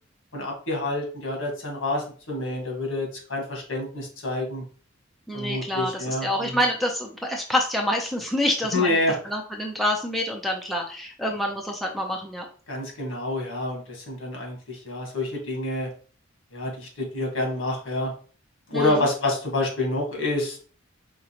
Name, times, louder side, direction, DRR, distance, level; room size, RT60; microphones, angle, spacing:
voice 1, 0.3-4.6 5.3-6.6 8.7-9.2 12.7-15.9 16.5-18.1 18.7-20.6, left 2 dB, 75° left, 1 dB, 1.5 m, -28 dB
voice 2, 5.3-9.0 9.2-12.5 18.7-19.1, left 1 dB, ahead, -1 dB, 0.6 m, -27 dB
5.0 x 3.0 x 2.9 m, 0.41 s
head